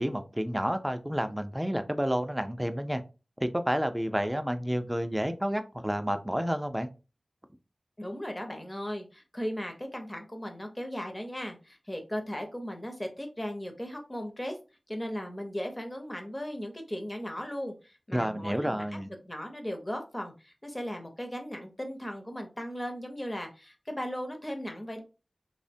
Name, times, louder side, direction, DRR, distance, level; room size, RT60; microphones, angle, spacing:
voice 1, 0.0-3.0 3.4-6.9 18.1-19.1, equal, 10° right, 8 dB, 0.4 m, -30 dB
voice 2, 8.0-14.6 14.9-18.8 19.2-25.0, equal, 25° left, 4 dB, 0.7 m, -37 dB
3.1 x 2.1 x 2.6 m, 0.31 s
wide cardioid pair, 55°, 0 cm